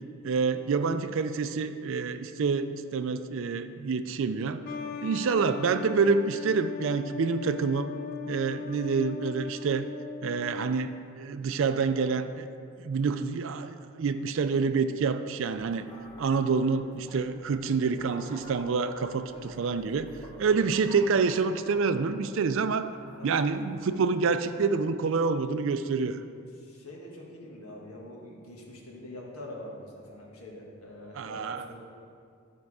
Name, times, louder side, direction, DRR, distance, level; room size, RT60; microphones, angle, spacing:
voice 1, 0.2-4.6 5.0-7.9 8.3-9.9 10.2-12.5 12.8-15.9 16.2-20.1 20.4-22.9 23.2-26.2 31.1-31.8, right 5 dB, 60° right, 11 dB, 0.4 m, -27 dB
sound 1, 4.6-10.9, left 5 dB, 40° left, 0.3 m, -39 dB
sound 2, 15.4-25.0, left 1 dB, 15° left, 1.2 m, -49 dB
voice 2, 19.2-19.8 23.2-23.4 26.6-31.8, left 1 dB, 80° left, -2 dB, 1.6 m, -45 dB
11.5 x 4.7 x 4.8 m, 2.4 s
head